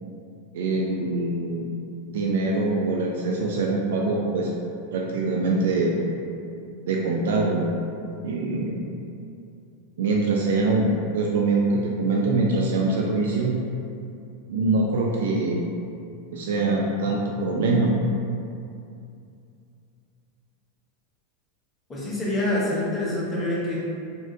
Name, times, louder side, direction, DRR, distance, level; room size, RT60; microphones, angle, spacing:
voice 1, 0.5-1.6 2.1-4.5 4.9-6.0 6.9-7.7 8.2-8.7 10.0-13.5 14.5-15.6 16.3-17.9, right 3 dB, 90° right, -2 dB, 0.3 m, -23 dB
voice 2, 21.9-23.8, left 1 dB, 10° left, -7 dB, 0.6 m, -26 dB
3.7 x 2.1 x 2.5 m, 2.5 s
supercardioid pair, 175°, 0 cm